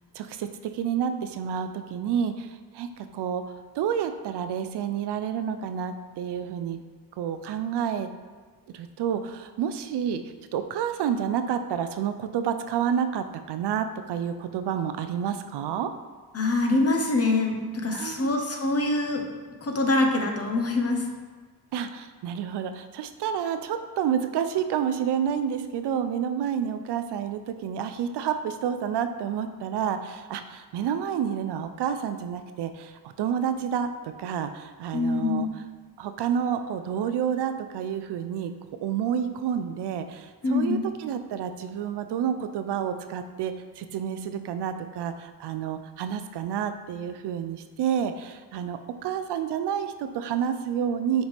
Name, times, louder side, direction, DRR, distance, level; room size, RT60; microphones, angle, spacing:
voice 1, 0.1-6.8 7.2-8.1 8.7-10.2 10.5-15.9 17.9-18.4 21.7-35.5 36.0-38.5 38.8-51.3, right 8 dB, 80° right, 9 dB, 0.5 m, -29 dB
voice 2, 16.3-19.3 19.6-21.1 34.9-35.5 40.4-40.8, left 2 dB, 35° left, 2 dB, 1.1 m, -24 dB
6.5 x 4.6 x 3.4 m, 1.5 s
cardioid pair, 70°, 40 cm